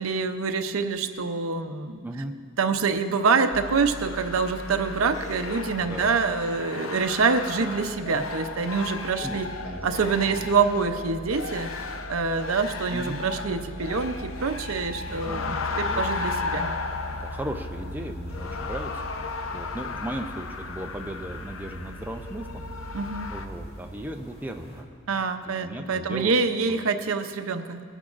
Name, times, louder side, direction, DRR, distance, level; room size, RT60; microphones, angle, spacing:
voice 1, 0.0-2.0 2.6-9.5 9.8-11.7 12.1-16.7 22.9-23.3 25.1-27.8, right 4 dB, 85° right, 8 dB, 0.7 m, -26 dB
voice 2, 2.0-2.4 5.8-6.1 8.1-8.2 9.2-9.8 10.3-10.5 12.9-13.2 15.1-16.0 16.8-22.6 23.3-24.9 25.6-26.3 26.7-26.8, right 1 dB, 10° right, 3 dB, 0.5 m, -37 dB
sound 1, 3.5-23.5, left 3 dB, 70° left, 0.7 m, -34 dB
sound 2, 15.1-24.8, equal, 50° left, 1.9 m, -48 dB
20.0 x 10.0 x 2.5 m, 2.2 s
head